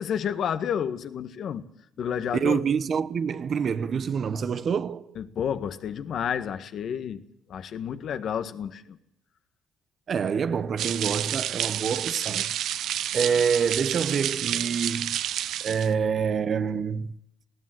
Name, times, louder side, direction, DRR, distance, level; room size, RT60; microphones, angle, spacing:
voice 1, 0.0-1.6 2.0-2.6 5.1-7.2 7.5-9.0, left 8 dB, 60° left, 1.7 m, -30 dB
voice 2, 2.3-5.2 10.1-12.5 13.1-15.2 15.6-17.1, right 6 dB, 50° right, 1.1 m, -26 dB
sound 1, 10.8-15.9, right 11 dB, 70° right, 0.8 m, -29 dB
20.0 x 16.5 x 7.8 m
supercardioid pair, 85°, 0 cm